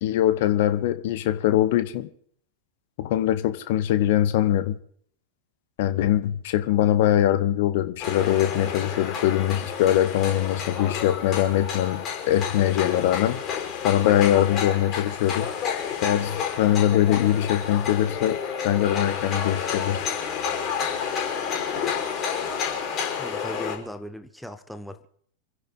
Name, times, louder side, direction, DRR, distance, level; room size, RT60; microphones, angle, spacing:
voice 1, 0.0-2.1 3.0-4.8 5.8-13.4 13.8-15.5 16.0-18.4 18.6-20.0, left 12 dB, 50° left, 12 dB, 1.3 m, -22 dB
sound 1, 8.0-23.8, left 7 dB, 30° left, 5.3 m, -30 dB
voice 2, 23.2-25.1, equal, ahead, 8 dB, 1.1 m, -38 dB
29.0 x 10.5 x 4.0 m, 0.62 s
figure-of-eight pair, 90°, 0 cm